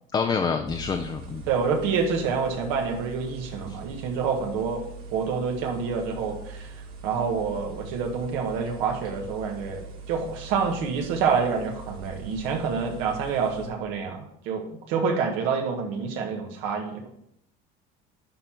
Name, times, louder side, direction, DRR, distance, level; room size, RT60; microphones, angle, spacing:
voice 1, 0.1-1.4 3.7-3.8, left 5 dB, 20° left, 5 dB, 0.5 m, -27 dB
sound 1, 0.7-13.7, right 4 dB, 55° right, 2.2 m, -42 dB
voice 2, 1.5-4.8 5.1-6.7 7.0-17.0, right 5 dB, 80° right, 2 dB, 1.7 m, -27 dB
11.0 x 4.0 x 4.5 m, 0.73 s
cardioid pair, 150°, 19 cm